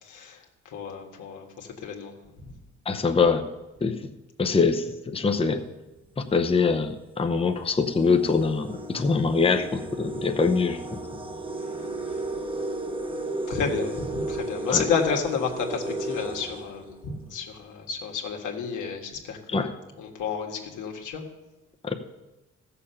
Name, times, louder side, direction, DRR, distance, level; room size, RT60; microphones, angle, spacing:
voice 1, 0.0-2.1 2.4-2.5 13.5-19.7 20.0-21.2, left 6 dB, 80° left, 2 dB, 1.7 m, -31 dB
voice 2, 2.9-3.5 3.8-4.1 4.4-5.6 6.2-11.0 14.7-14.8 19.5-19.7 21.8-21.9, left 4 dB, 20° left, 5 dB, 0.8 m, -24 dB
sound 1, 6.0-6.2 7.1-7.2 7.6-17.4, right 2 dB, 15° right, 1.0 m, -34 dB
14.5 x 6.9 x 5.7 m, 1.0 s
cardioid pair, 90°, 30 cm